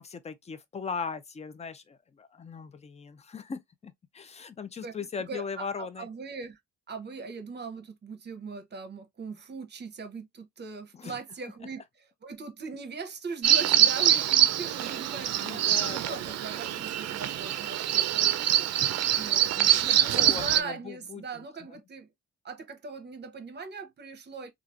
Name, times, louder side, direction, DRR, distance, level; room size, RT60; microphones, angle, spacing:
voice 1, 0.0-6.1 10.9-11.2 13.4-13.8 15.4-16.2 19.6-21.4, left 5 dB, 20° left, 0.5 m, -39 dB
voice 2, 4.8-6.6 6.9-18.7 19.2-19.5 19.8-22.1 22.4-24.5, right 4 dB, 35° right, 0.8 m, -40 dB
Bird vocalization bird call bird song, 13.4-20.6, right 11 dB, 60° right, 0.5 m, -24 dB
3.1 x 2.4 x 2.4 m
cardioid pair, 90°, 30 cm